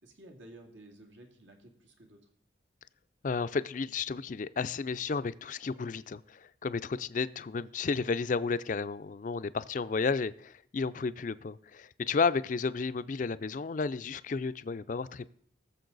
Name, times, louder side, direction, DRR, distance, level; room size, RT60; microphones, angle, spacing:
voice 1, 0.0-2.3, right 1 dB, 85° right, 2.3 m, -53 dB
voice 2, 3.2-15.3, left 4 dB, 40° left, 0.4 m, -32 dB
19.0 x 7.0 x 4.0 m
head